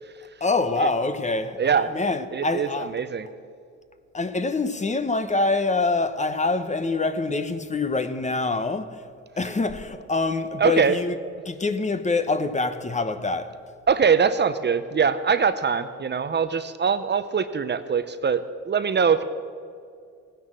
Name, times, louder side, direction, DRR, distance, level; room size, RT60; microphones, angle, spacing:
voice 1, 0.4-2.9 4.1-9.0 9.4-11.2 11.4-13.5, left 3 dB, 25° left, 1.0 m, -25 dB
voice 2, 1.6-1.9 2.3-3.3 10.6-11.0 13.9-19.2, right 6 dB, 35° right, 0.7 m, -22 dB
16.0 x 10.5 x 7.5 m
cardioid pair, 90°, 30 cm